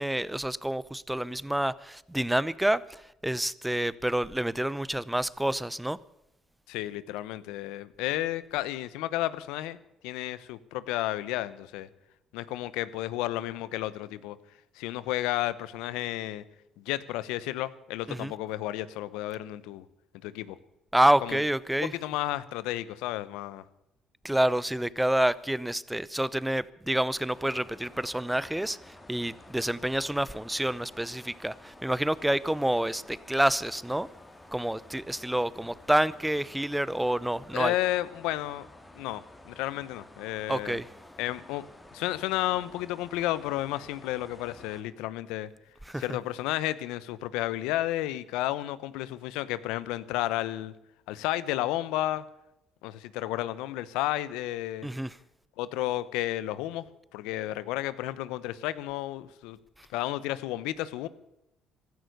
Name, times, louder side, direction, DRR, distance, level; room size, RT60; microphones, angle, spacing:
voice 1, 0.0-6.0 18.1-18.3 20.9-21.9 24.2-34.1 34.5-37.7 40.5-40.9 45.9-46.0 54.8-55.1, right 1 dB, 5° right, 19 dB, 0.7 m, -28 dB
voice 2, 6.7-9.8 10.0-11.9 12.3-14.4 14.7-16.4 16.8-19.8 20.2-20.6 21.2-21.4 21.8-23.6 37.5-38.7 38.9-40.8 41.2-41.7 41.9-45.5 46.0-50.7 51.1-52.2 52.8-54.9 55.6-56.9 57.1-59.6 59.9-61.1, left 15 dB, 90° left, 17 dB, 0.9 m, -32 dB
sound 1, 27.3-44.8, left 1 dB, 15° left, 2.8 m, -52 dB
15.5 x 13.0 x 6.7 m, 0.87 s
cardioid pair, 95°, 0 cm